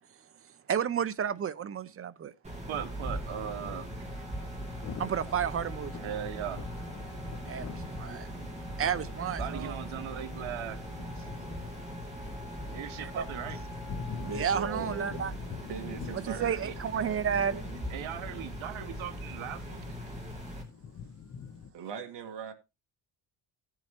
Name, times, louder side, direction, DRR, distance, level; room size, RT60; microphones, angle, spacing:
voice 1, 0.7-2.3 5.0-5.9 7.5-8.3 8.8-9.7 13.0-13.3 14.3-15.3 16.4-17.6, right 8 dB, 30° right, 0.5 m, -31 dB
sound 1, 2.4-20.6, equal, 15° right, 2.7 m, -40 dB
voice 2, 2.7-4.1 5.9-6.6 9.4-10.8 11.2-11.3 12.7-13.6 16.6-16.7 17.9-19.8, right 10 dB, 70° right, 1.1 m, -39 dB
Wind instrument woodwind instrument, 3.2-15.3, left 4 dB, 10° left, 4.0 m, -52 dB
Thunder / Rain, 4.7-21.7, left 6 dB, 30° left, 0.6 m, -46 dB
voice 3, 14.2-15.2 15.7-17.8 21.7-22.5, right 7 dB, 55° right, 1.8 m, -40 dB
16.5 x 7.4 x 2.9 m
cardioid pair, 175°, 49 cm